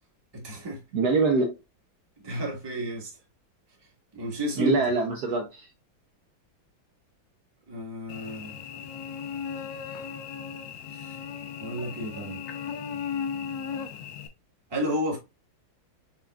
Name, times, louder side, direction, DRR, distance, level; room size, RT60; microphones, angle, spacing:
voice 1, 0.3-0.8 2.2-3.1 4.1-4.9 7.7-8.6 10.9-11.2 11.6-12.6 14.7-15.2, equal, 15° right, 1.1 m, -32 dB
voice 2, 0.9-1.6 4.6-5.7, right 3 dB, 65° right, 1.1 m, -24 dB
Cricket / Buzz, 8.1-14.3, left 7 dB, 75° left, 1.4 m, -36 dB
5.9 x 3.6 x 2.3 m
omnidirectional pair, 2.1 m